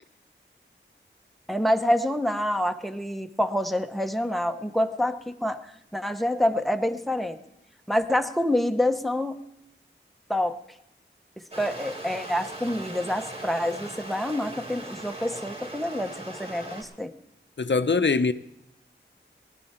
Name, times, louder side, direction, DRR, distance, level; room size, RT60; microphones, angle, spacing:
voice 1, 1.5-7.4 7.9-9.4 10.3-10.6 11.6-17.1, left 1 dB, ahead, 0.9 m, -27 dB
Stream, 11.5-16.8, right 1 dB, 30° right, 3.3 m, -39 dB
voice 2, 17.6-18.3, left 4 dB, 65° left, 0.6 m, -22 dB
18.0 x 11.0 x 4.4 m
wide cardioid pair, 40°, 20 cm